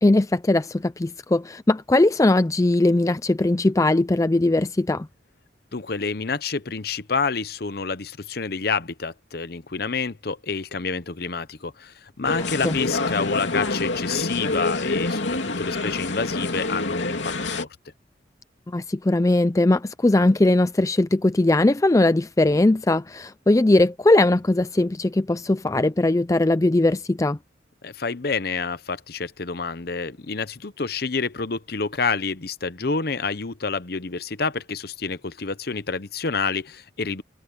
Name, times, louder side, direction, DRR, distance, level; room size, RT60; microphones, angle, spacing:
voice 1, 0.0-5.1 12.6-12.8 18.7-27.4, left 2 dB, 15° left, 0.4 m, -20 dB
voice 2, 5.7-17.7 27.8-37.2, left 4 dB, 55° left, 0.9 m, -28 dB
sound 1, 12.2-17.6, left 2 dB, 80° left, 2.8 m, -27 dB
head